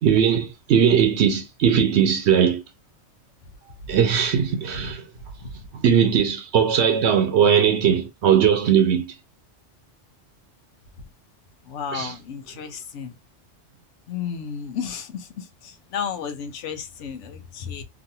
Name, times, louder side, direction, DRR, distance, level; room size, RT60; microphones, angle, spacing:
voice 1, 0.0-2.6 3.9-5.0 5.8-9.1 11.9-12.2, right 8 dB, 70° right, 0.9 m, -19 dB
voice 2, 11.7-12.7 12.9-13.1 14.1-15.0 15.9-17.2 17.7-17.8, left 7 dB, 80° left, 1.0 m, -31 dB
3.0 x 2.6 x 2.7 m
omnidirectional pair, 1.2 m